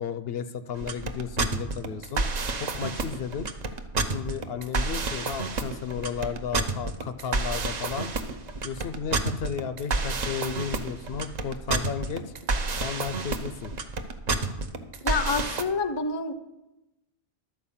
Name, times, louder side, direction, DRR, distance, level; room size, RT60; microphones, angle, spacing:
voice 1, 0.0-2.2 2.6-3.5 4.0-8.1 8.6-12.3 12.8-13.7, left 7 dB, 65° left, 11 dB, 0.7 m, -34 dB
sound 1, 0.7-15.6, right 3 dB, 45° right, 0.7 m, -29 dB
voice 2, 15.0-16.3, left 4 dB, 35° left, 10 dB, 0.4 m, -27 dB
12.0 x 4.6 x 7.1 m, 0.98 s
omnidirectional pair, 1.2 m